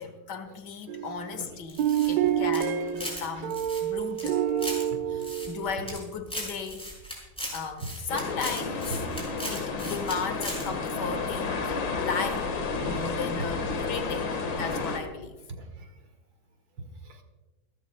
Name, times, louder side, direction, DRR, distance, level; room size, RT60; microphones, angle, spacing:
voice 1, 0.0-4.5 5.1-6.9 7.5-9.0 9.5-12.5 12.8-14.3 14.6-15.4, left 5 dB, 65° left, 8 dB, 1.9 m, -35 dB
sound 1, 0.9-1.3 1.8-6.1, right 10 dB, 70° right, 1.6 m, -28 dB
voice 2, 0.9-1.6 1.9-2.3 3.4-3.5 4.9-5.0 7.8-7.9 8.9-9.0 11.1-11.2 12.9-13.5 15.5-15.9 16.8-17.2, right 3 dB, 90° right, 5 dB, 2.5 m, -41 dB
sound 2, 1.7-3.2 3.5-4.8 5.2-6.0 6.3-10.1 10.4-10.6, equal, 5° left, 6.2 m, -37 dB
sound 3, 8.1-15.0, left 4 dB, 85° left, 2.2 m, -31 dB
29.0 x 13.0 x 2.2 m, 1.1 s
omnidirectional pair, 2.0 m